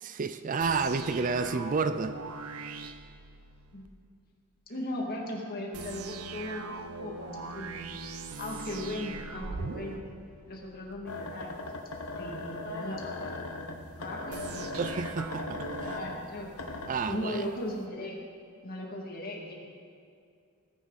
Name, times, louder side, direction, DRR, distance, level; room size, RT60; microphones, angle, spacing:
voice 1, 0.0-2.2 14.8-16.0 16.9-17.4, right 4 dB, 35° right, 11 dB, 0.4 m, -30 dB
sound 1, 0.6-3.9 5.7-11.0 14.3-17.0, right 4 dB, 80° right, 0.7 m, -41 dB
voice 2, 4.7-8.0 8.4-10.0 10.5-11.9 12.2-14.7 15.5-16.5 17.1-18.2 18.6-19.5, left 1 dB, 45° left, -1 dB, 2.4 m, -38 dB
sound 2, 11.1-17.3 17.8-17.9, left 2 dB, 85° left, 1.3 m, -39 dB
20.0 x 9.9 x 4.2 m, 2.3 s
head